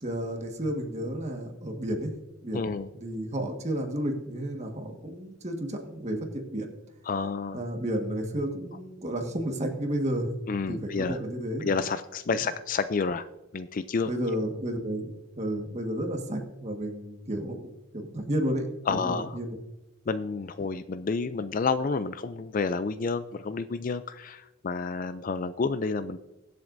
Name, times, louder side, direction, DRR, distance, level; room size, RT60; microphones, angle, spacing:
voice 1, 0.0-2.1 2.4-6.7 7.5-10.4 10.7-11.7 14.1-18.7 19.0-19.6, right 1 dB, 30° right, 3 dB, 1.5 m, -32 dB
voice 2, 2.5-2.9 7.1-7.6 10.5-11.2 11.6-13.3 13.5-14.1 18.9-19.4 20.1-26.2, left 4 dB, 40° left, 13 dB, 0.4 m, -30 dB
23.0 x 7.7 x 2.6 m, 1.0 s
head